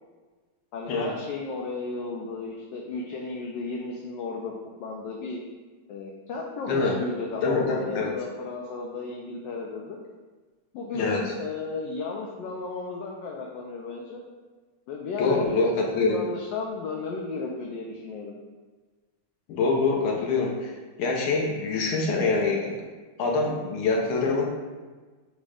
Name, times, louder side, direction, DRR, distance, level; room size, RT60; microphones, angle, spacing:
voice 1, 0.7-4.5 4.8-5.4 5.9-10.0 10.7-14.2 14.9-15.7 16.1-18.3, left 3 dB, 75° left, -1 dB, 1.1 m, -34 dB
voice 2, 7.4-8.1 10.9-11.3 15.2-16.2 19.5-20.7 21.0-22.7 23.2-24.4, left 3 dB, 90° left, -1 dB, 1.6 m, -25 dB
5.1 x 2.1 x 4.9 m, 1.4 s
omnidirectional pair, 2.3 m